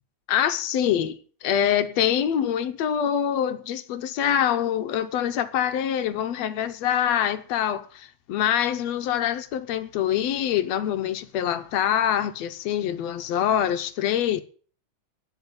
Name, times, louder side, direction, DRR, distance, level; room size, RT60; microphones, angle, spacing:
voice 1, 0.3-14.4, left 10 dB, 70° left, 1.9 m, -25 dB
12.0 x 9.7 x 6.8 m
omnidirectional pair, 3.3 m